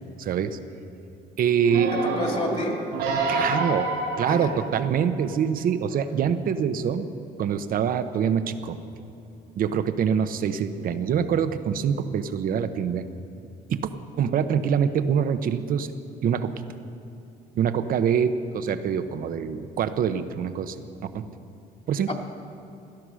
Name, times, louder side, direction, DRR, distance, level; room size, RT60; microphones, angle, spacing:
voice 1, 0.2-0.6 1.4-1.9 3.3-3.9 4.2-7.0 7.4-8.8 9.6-13.0 13.7-13.9 14.2-15.9 16.2-16.6 17.6-20.8 21.1-21.2 21.9-22.1, right 7 dB, 55° right, 10 dB, 0.9 m, -25 dB
sound 1, 1.6-5.2 5.8-5.9, right 3 dB, 90° right, 4.1 m, -28 dB
voice 2, 2.0-2.8 4.2-4.5 22.1-22.2, left 2 dB, 40° left, 1 dB, 2.5 m, -30 dB
16.5 x 12.5 x 6.3 m, 2.7 s
cardioid pair, 110°, 17 cm